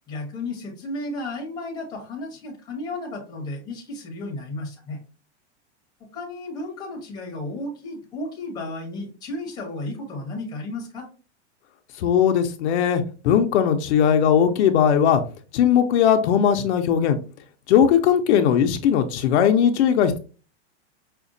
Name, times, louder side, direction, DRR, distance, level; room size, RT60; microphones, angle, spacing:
voice 1, 0.1-5.0 6.1-11.1, left 2 dB, 10° left, 1 dB, 0.8 m, -33 dB
voice 2, 12.0-15.2 15.5-17.2 17.7-20.2, left 8 dB, 65° left, 7 dB, 0.5 m, -19 dB
5.0 x 2.2 x 2.5 m, 0.36 s
supercardioid pair, 160°, 36 cm